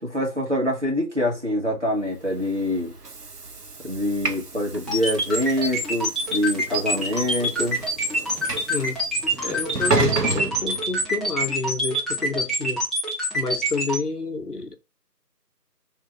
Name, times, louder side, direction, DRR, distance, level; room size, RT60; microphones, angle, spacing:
voice 1, 0.0-2.9 3.8-7.8, left 1 dB, 45° right, 1.7 m, -25 dB
Train / Sliding door, 2.2-11.5, right 3 dB, 70° right, 0.8 m, -31 dB
sound 1, 4.9-14.0, right 1 dB, ahead, 0.9 m, -25 dB
voice 2, 8.7-9.0 9.4-12.8 13.3-14.8, left 4 dB, 65° left, 0.9 m, -29 dB
3.6 x 3.3 x 4.4 m
figure-of-eight pair, 180°, 50 cm